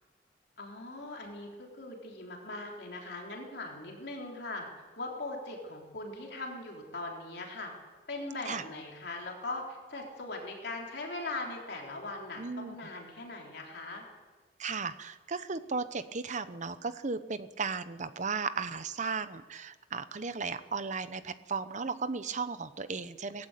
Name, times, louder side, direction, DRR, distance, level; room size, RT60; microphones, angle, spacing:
voice 1, 0.6-4.7 5.0-7.7 8.1-14.0, left 2 dB, 65° left, 0 dB, 3.6 m, -40 dB
voice 2, 12.4-12.8 14.6-23.5, right 4 dB, 45° right, 13 dB, 0.9 m, -35 dB
18.5 x 15.0 x 9.2 m, 1.3 s
head